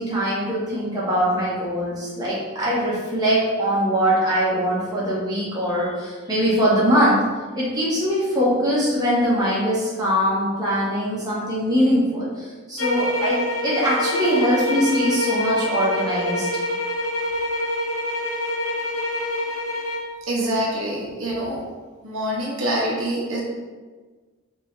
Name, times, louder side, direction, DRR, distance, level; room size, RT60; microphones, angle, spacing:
voice 1, 0.0-7.2 7.5-16.5, equal, 20° right, -8 dB, 1.3 m, -22 dB
sound 1, 12.8-20.1, left 1 dB, 85° left, 0.7 m, -26 dB
voice 2, 20.3-21.6 22.0-23.4, right 1 dB, 85° right, -4 dB, 1.0 m, -25 dB
4.7 x 3.3 x 2.7 m, 1.4 s
head